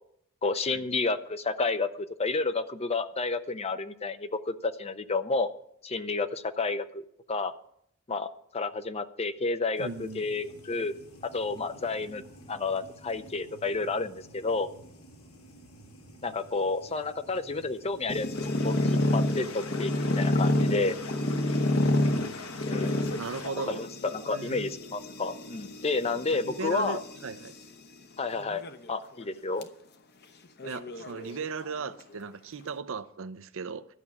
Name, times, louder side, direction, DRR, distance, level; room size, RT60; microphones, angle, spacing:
voice 1, 0.4-5.5 5.8-7.0 7.3-7.5 8.1-10.9 11.3-12.2 12.5-14.7 16.2-18.3 18.6-21.0 22.7-23.2 23.6-27.0 28.2-28.6 28.9-29.7, left 3 dB, 30° left, 11 dB, 0.6 m, -30 dB
sound 1, 9.7-19.2, right 1 dB, 90° left, 2.7 m, -52 dB
voice 2, 9.8-10.4 23.1-23.8 24.3-24.8 26.3-27.5 30.6-33.9, right 4 dB, 60° right, 12 dB, 0.6 m, -37 dB
sound 2, 18.1-27.5 28.3-28.9 29.2-29.3 29.6-29.7 30.6-31.7, left 1 dB, 50° left, 0.9 m, -29 dB
sound 3, 18.3-23.5, left 4 dB, 65° left, 1.3 m, -43 dB
12.5 x 6.1 x 8.4 m, 0.71 s
head